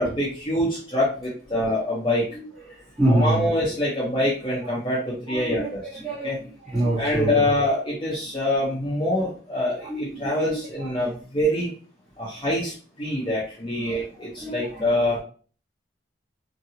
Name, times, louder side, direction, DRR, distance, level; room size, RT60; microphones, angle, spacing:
voice 1, 0.0-2.3 3.1-5.8 6.2-6.4 7.0-11.7 12.2-15.2, left 1 dB, 25° left, 0.8 m, -25 dB
voice 2, 2.3-3.5 4.1-4.2 5.3-7.5 9.1-9.2 9.8-11.1 13.2-13.3 13.7-14.8, right 1 dB, ahead, 1.5 m, -28 dB
2.7 x 2.6 x 2.8 m
head